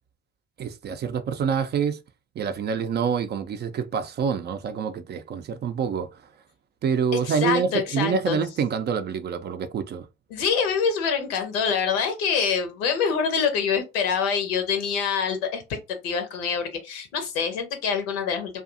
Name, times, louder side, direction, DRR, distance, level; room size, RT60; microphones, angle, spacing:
voice 1, 0.6-2.0 2.4-6.1 6.8-10.1, right 6 dB, 35° right, 0.4 m, -26 dB
voice 2, 7.3-8.4 10.3-15.8 16.0-18.6, left 6 dB, 70° left, 0.8 m, -25 dB
2.6 x 2.4 x 2.5 m
hypercardioid pair, 55°, 31 cm